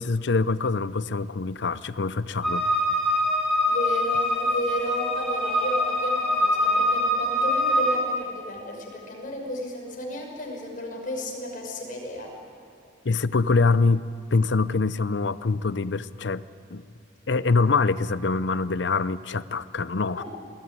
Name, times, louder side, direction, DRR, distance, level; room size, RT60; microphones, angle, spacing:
voice 1, 0.0-2.7 13.0-16.4 16.7-16.8 17.3-20.2, left 4 dB, 75° left, 16 dB, 0.7 m, -24 dB
sound 1, 2.4-8.0, left 1 dB, ahead, 4.6 m, -24 dB
voice 2, 3.7-12.3 20.2-20.3, equal, 50° left, 0 dB, 5.8 m, -33 dB
26.0 x 19.0 x 9.7 m, 2.4 s
head